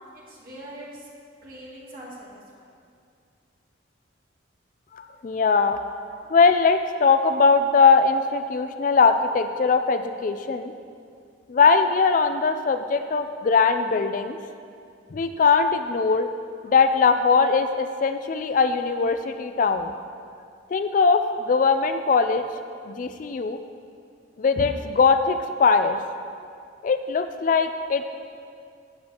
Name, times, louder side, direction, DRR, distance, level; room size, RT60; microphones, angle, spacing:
voice 1, 0.1-1.1 1.4-2.7, right 1 dB, 45° right, -6 dB, 2.4 m, -42 dB
voice 2, 4.9-5.8 6.3-10.7 11.5-14.4 15.1-16.3 16.6-19.9 20.7-22.5 22.9-23.6 24.4-26.0 26.8-28.1, left 5 dB, 40° left, 9 dB, 0.3 m, -21 dB
14.5 x 8.6 x 2.9 m, 2.3 s
head